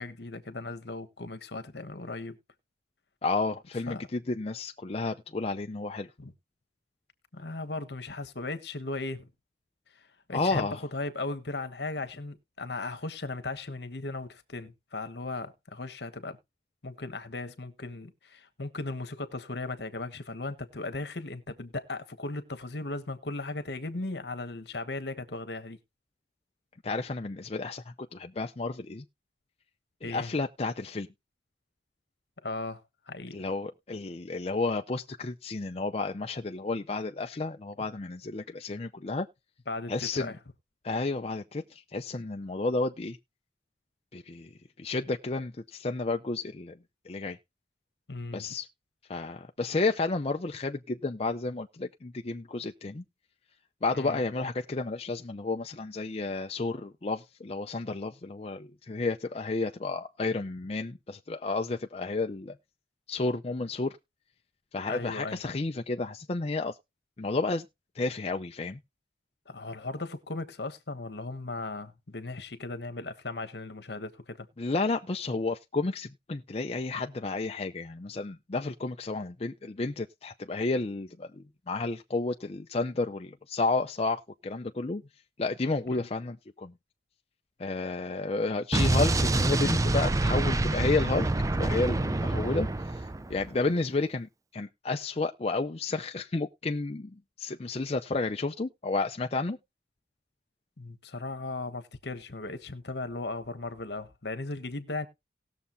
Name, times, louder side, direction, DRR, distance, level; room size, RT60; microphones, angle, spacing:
voice 1, 0.0-2.4 3.9-4.1 6.2-6.3 7.3-9.3 10.3-16.4 16.8-25.8 30.0-30.3 32.4-32.8 33.1-33.4 39.7-40.4 48.1-48.6 53.9-54.2 64.9-65.5 69.5-74.5 85.9-86.1 100.8-105.1, left 2 dB, 65° left, 1.3 m, -37 dB
voice 2, 3.2-6.1 10.3-10.8 26.8-29.0 30.0-31.1 33.3-39.3 39.9-40.3 40.8-43.2 44.1-44.5 44.8-46.8 47.1-47.4 48.3-48.7 49.1-53.0 53.8-62.5 63.1-64.0 64.7-66.8 67.2-67.6 68.0-68.8 74.6-85.0 85.4-86.7 87.6-93.0 93.3-99.6, left 3 dB, 35° left, 0.5 m, -31 dB
Explosion, 88.7-93.5, right 2 dB, 20° right, 0.5 m, -26 dB
18.5 x 6.9 x 2.7 m
head